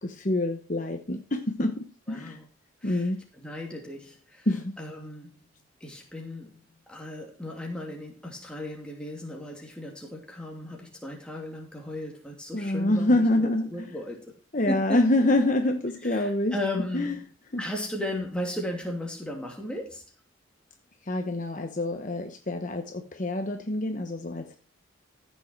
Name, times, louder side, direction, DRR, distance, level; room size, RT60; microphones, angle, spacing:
voice 1, 0.0-2.4 2.8-3.2 4.5-4.7 12.5-13.9 14.5-16.5 16.9-17.2 17.5-17.6 21.1-24.6, left 1 dB, 40° left, 1.0 m, -26 dB
voice 2, 2.1-2.5 2.8-3.1 3.4-4.5 4.8-5.4 5.8-6.6 6.9-14.4 14.7-15.0 16.0-17.2 17.6-20.0, left 1 dB, 5° left, 2.7 m, -36 dB
15.0 x 6.6 x 4.6 m
head